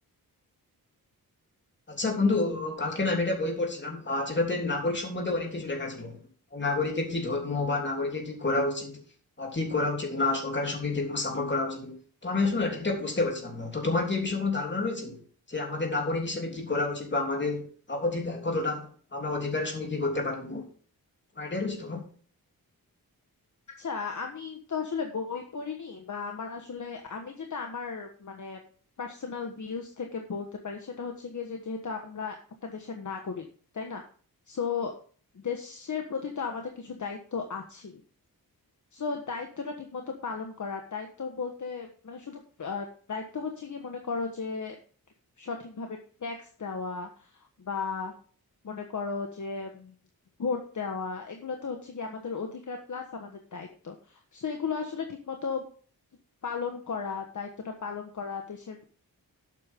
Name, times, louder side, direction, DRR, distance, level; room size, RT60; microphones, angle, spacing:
voice 1, 1.9-6.2 6.5-9.0 9.4-11.9 12.2-15.2 15.5-20.6 21.4-22.1, left 3 dB, 30° left, 1 dB, 3.3 m, -29 dB
voice 2, 23.8-28.6 29.0-32.4 32.6-33.4 33.7-34.0 34.5-34.9 35.3-38.0 38.9-44.7 45.4-47.3 47.6-48.1 48.6-49.9 50.4-55.6 56.4-58.8, left 5 dB, 50° left, 3 dB, 1.4 m, -35 dB
12.0 x 8.3 x 3.7 m, 0.42 s
wide cardioid pair, 155°, 37 cm